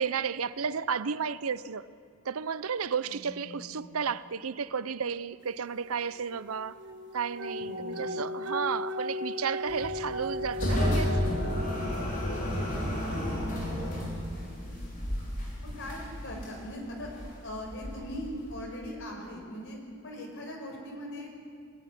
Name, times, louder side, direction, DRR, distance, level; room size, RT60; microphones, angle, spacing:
voice 1, 0.0-1.9 2.2-6.8 7.1-11.1, right 6 dB, 80° right, 0.7 m, -33 dB
voice 2, 3.0-3.7 7.6-8.2 12.3-12.8 15.8-17.1 17.4-21.3, equal, 60° left, 5.5 m, -40 dB
sound 1, 6.0-12.7, left 1 dB, 55° right, 1.4 m, -37 dB
sound 2, 9.7-18.8, left 1 dB, 40° left, 5.3 m, -32 dB
22.0 x 16.0 x 10.0 m
head